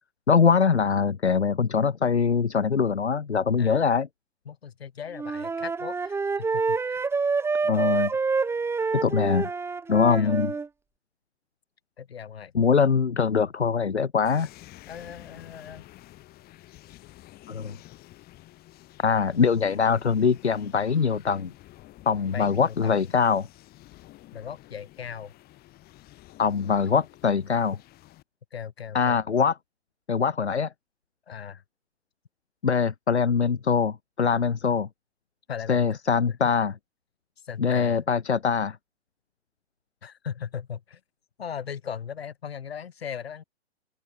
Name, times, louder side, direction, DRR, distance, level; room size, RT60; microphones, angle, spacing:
voice 1, 0.3-4.1 7.6-8.1 8.9-9.5 9.9-10.5 12.5-14.5 17.5-17.7 19.0-21.5 22.1-23.5 26.4-27.7 28.9-29.5 30.1-30.7 32.6-34.9 35.7-36.7 37.6-38.8, left 6 dB, 85° left, 0.8 m, -23 dB
voice 2, 3.6-3.9 4.5-7.0 10.1-10.4 12.0-12.5 14.9-15.9 22.3-23.0 24.3-25.3 28.5-29.2 31.3-31.6 34.6-34.8 35.5-36.0 36.3-36.4 37.4-38.0 40.0-41.0 41.4-43.4, left 7 dB, 65° left, 5.7 m, -38 dB
Wind instrument woodwind instrument, 5.1-10.7, right 4 dB, 10° right, 1.3 m, -27 dB
sound 1, 14.2-28.2, left 17 dB, 30° left, 6.0 m, -50 dB
open air
figure-of-eight pair, 110°, 33 cm